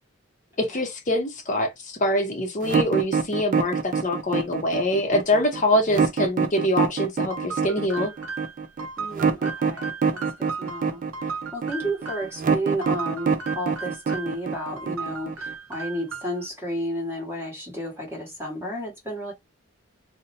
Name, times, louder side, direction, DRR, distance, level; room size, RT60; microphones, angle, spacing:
voice 1, 0.6-8.1, left 1 dB, 35° left, 0.6 m, -24 dB
sound 1, 2.6-15.5, right 5 dB, 40° right, 0.4 m, -25 dB
sound 2, 7.3-12.4 12.8-14.4 14.8-16.5, right 4 dB, 75° right, 0.6 m, -36 dB
voice 2, 9.0-19.3, equal, 10° right, 1.2 m, -32 dB
2.6 x 2.1 x 4.0 m
head